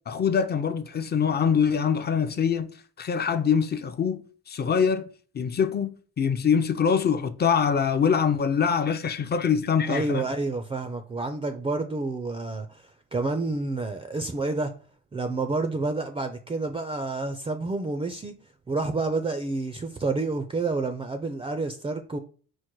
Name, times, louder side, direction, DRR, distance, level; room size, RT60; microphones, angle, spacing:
voice 1, 0.1-2.7 3.0-5.0 5.3-10.2, left 7 dB, 35° left, 0.5 m, -24 dB
voice 2, 9.8-14.7 15.1-18.4 18.7-22.2, right 3 dB, 20° right, 0.4 m, -29 dB
4.6 x 2.1 x 4.5 m
cardioid pair, 90°, 30 cm